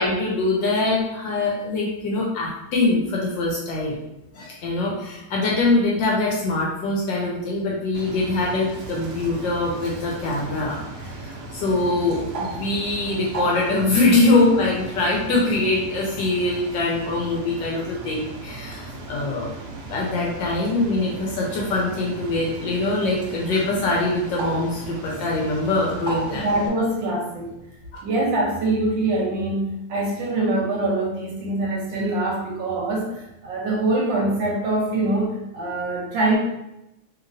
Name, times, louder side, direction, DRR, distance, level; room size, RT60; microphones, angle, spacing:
voice 1, 0.0-4.0 4.3-19.5 19.9-26.4, left 2 dB, 75° left, -3 dB, 1.1 m, -23 dB
Bird, 7.9-26.7, right 3 dB, 90° right, 0.8 m, -36 dB
voice 2, 26.4-27.5 28.0-36.4, right 2 dB, 75° right, -2 dB, 1.2 m, -24 dB
3.0 x 2.9 x 2.5 m, 0.91 s
omnidirectional pair, 2.3 m